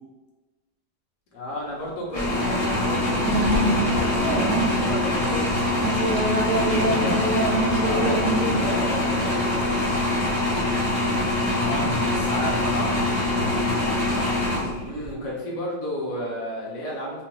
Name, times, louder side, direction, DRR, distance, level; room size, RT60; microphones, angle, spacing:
voice 1, 1.3-5.9 6.4-7.2 7.8-10.0 14.8-17.2, left 1 dB, 50° left, -5 dB, 1.0 m, -33 dB
sound 1, 2.1-15.1, left 1 dB, 30° left, 0.5 m, -24 dB
sound 2, 3.2-8.7, right 1 dB, 80° right, 0.7 m, -25 dB
voice 2, 6.7-7.2 11.1-14.0, left 2 dB, 75° left, -2 dB, 1.5 m, -32 dB
3.8 x 2.6 x 3.0 m, 1.2 s
omnidirectional pair, 2.4 m